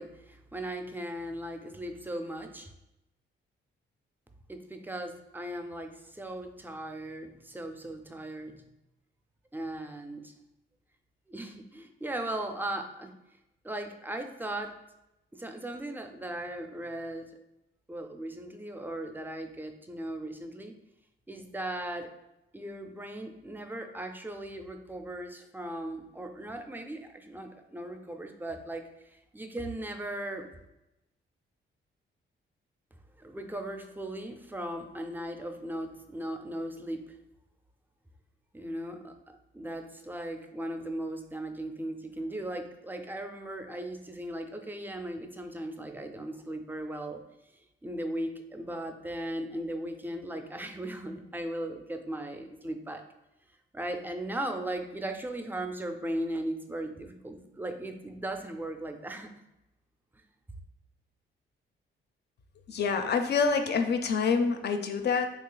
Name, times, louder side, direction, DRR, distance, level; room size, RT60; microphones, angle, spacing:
voice 1, 0.0-2.7 4.5-8.6 9.5-10.3 11.3-13.1 13.6-14.7 15.3-17.3 17.9-20.7 21.3-22.1 22.5-30.5 33.2-37.2 38.5-39.1 39.5-47.2 47.8-53.0 53.7-59.3, right 1 dB, 10° right, 5 dB, 0.4 m, -37 dB
voice 2, 62.7-65.4, left 5 dB, 50° left, 6 dB, 0.4 m, -27 dB
3.1 x 2.4 x 3.8 m, 0.92 s
cardioid pair, 95°, 21 cm